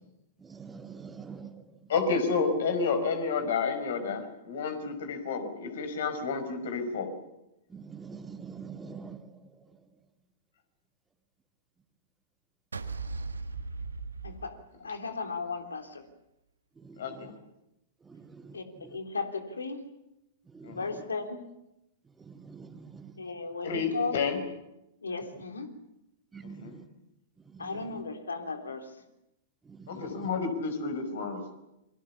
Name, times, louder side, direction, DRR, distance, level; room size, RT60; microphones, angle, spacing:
voice 1, 0.4-1.9 7.7-9.6 16.8-17.3 18.0-19.0 20.5-20.8 22.2-23.1 26.3-26.9 27.4-28.0 29.7-30.3, right 5 dB, 10° right, 2.5 m, -46 dB
voice 2, 1.9-7.1 17.0-17.3 20.6-20.8 23.6-24.4 26.4-26.7 29.9-31.4, left 4 dB, 55° left, 5.4 m, -30 dB
sound 1, 12.7-15.1, right 4 dB, 75° right, 1.6 m, -37 dB
voice 3, 14.2-14.5 14.8-16.0 18.5-19.8 20.7-21.4 23.2-24.2 25.0-25.7 27.6-28.9 29.9-30.2, left 4 dB, 75° left, 3.4 m, -36 dB
29.0 x 24.0 x 7.2 m
figure-of-eight pair, 100°, 0 cm